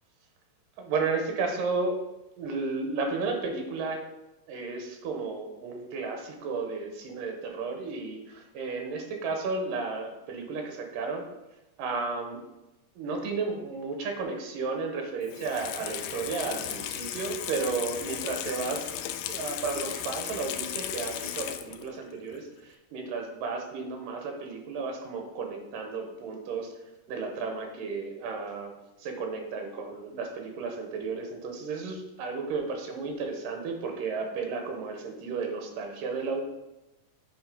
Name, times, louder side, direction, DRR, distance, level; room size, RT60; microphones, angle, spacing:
voice 1, 0.8-2.0 2.4-4.0 4.5-11.2 11.8-12.4 13.0-18.9 19.3-26.7 27.1-28.7 29.0-36.4, right 4 dB, 80° right, 3 dB, 2.7 m, -33 dB
Water tap faucet / Sink (filling or washing), 15.2-22.0 22.3-22.4, left 11 dB, 85° left, 1.7 m, -36 dB
8.0 x 3.8 x 5.0 m, 0.98 s
omnidirectional pair, 4.0 m